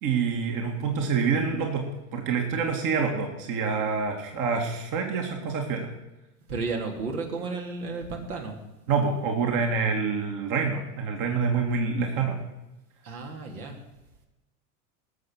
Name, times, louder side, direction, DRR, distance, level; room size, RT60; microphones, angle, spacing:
voice 1, 0.0-5.9 8.9-12.4, right 5 dB, 45° right, 3 dB, 2.4 m, -27 dB
voice 2, 6.5-8.6 13.0-13.8, right 4 dB, 70° right, 2 dB, 2.9 m, -33 dB
18.5 x 7.0 x 6.4 m, 1.0 s
hypercardioid pair, 90°, 46 cm